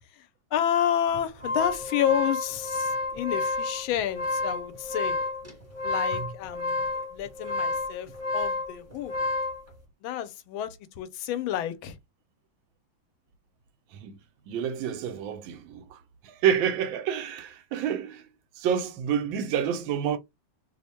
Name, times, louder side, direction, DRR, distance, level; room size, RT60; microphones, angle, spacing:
voice 1, 0.5-5.2 5.8-9.1 10.0-12.0, left 10 dB, 85° left, 1.4 m, -30 dB
sound 1, 1.1-9.6, left 2 dB, 10° right, 0.9 m, -30 dB
voice 2, 14.5-18.3 18.6-20.2, right 8 dB, 80° right, 1.3 m, -28 dB
3.2 x 2.1 x 4.2 m
omnidirectional pair, 2.2 m